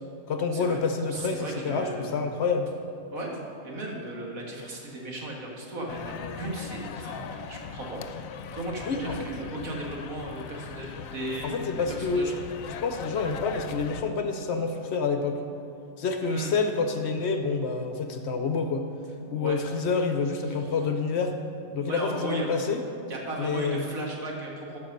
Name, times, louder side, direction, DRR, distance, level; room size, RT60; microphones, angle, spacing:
voice 1, 0.3-2.7 8.8-9.3 11.4-12.3 12.8-15.4 16.0-18.9 19.3-21.4 21.7-22.8 23.4-23.9, left 4 dB, 60° left, 6 dB, 0.9 m, -28 dB
voice 2, 1.1-2.1 3.1-8.0 8.5-12.3 16.3-16.5 19.2-19.6 21.9-22.5 23.1-24.8, right 1 dB, 85° right, -1 dB, 2.1 m, -36 dB
sound 1, 5.9-14.0, left 7 dB, 80° left, 1.0 m, -40 dB
13.5 x 5.3 x 6.6 m, 2.7 s
omnidirectional pair, 1.4 m